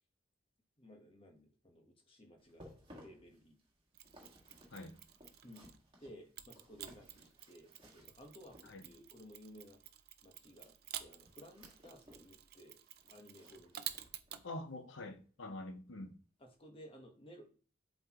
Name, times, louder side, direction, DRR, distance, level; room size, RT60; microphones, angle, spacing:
voice 1, 0.8-2.7 3.0-3.6 5.4-5.6 6.0-9.8 10.2-12.8 13.1-14.1 16.4-17.5, equal, 30° left, 1.3 m, -57 dB
sound 1, 2.4-9.1 10.5-12.3 12.6-14.6 15.0-15.2 15.7-15.8, equal, 25° right, 1.8 m, -61 dB
Mechanisms, 3.9-5.9 6.4-14.4, right 11 dB, 50° right, 0.5 m, -51 dB
voice 2, 14.4-16.1, left 2 dB, 80° left, 0.9 m, -46 dB
7.8 x 4.4 x 3.0 m
head